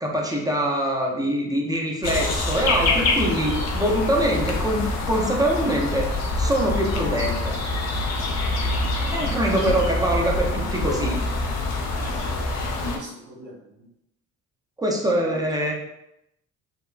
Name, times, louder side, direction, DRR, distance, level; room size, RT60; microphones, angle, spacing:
voice 1, 0.0-6.1 6.4-7.5 9.0-11.2 14.8-15.7, right 1 dB, 15° right, -1 dB, 0.5 m, -24 dB
sound 1, 2.0-13.0, left 2 dB, 60° left, 0.6 m, -25 dB
voice 2, 11.9-12.4 12.8-13.9 15.2-15.4, right 1 dB, 75° right, -3 dB, 1.1 m, -43 dB
2.8 x 2.1 x 2.4 m, 0.82 s
cardioid pair, 90°, 30 cm